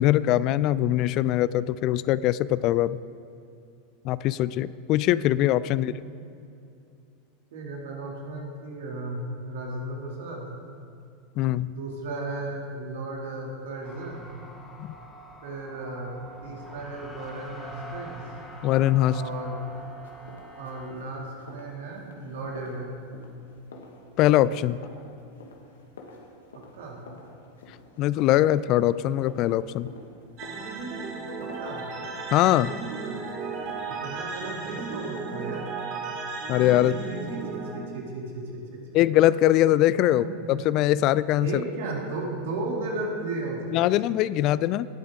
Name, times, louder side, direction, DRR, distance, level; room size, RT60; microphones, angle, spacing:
voice 1, 0.0-3.0 4.0-6.0 11.4-11.7 14.8-14.9 18.6-19.2 24.2-24.8 28.0-29.9 32.3-32.7 36.5-37.0 38.9-41.5 43.7-44.9, left 14 dB, 50° left, 18 dB, 0.3 m, -22 dB
voice 2, 7.5-10.5 11.7-14.3 15.4-18.2 19.1-19.6 20.6-23.0 26.5-27.0 31.4-31.8 33.9-35.7 36.8-38.8 40.0-40.5 41.4-43.9, right 2 dB, 70° right, -1 dB, 2.4 m, -35 dB
sound 1, 13.8-20.9, right 1 dB, 15° left, 2.8 m, -44 dB
sound 2, 18.3-34.9, left 3 dB, 80° left, 1.5 m, -49 dB
sound 3, 30.4-37.8, right 4 dB, 50° right, 2.6 m, -35 dB
18.0 x 8.5 x 3.6 m, 2.5 s
hypercardioid pair, 90°, 0 cm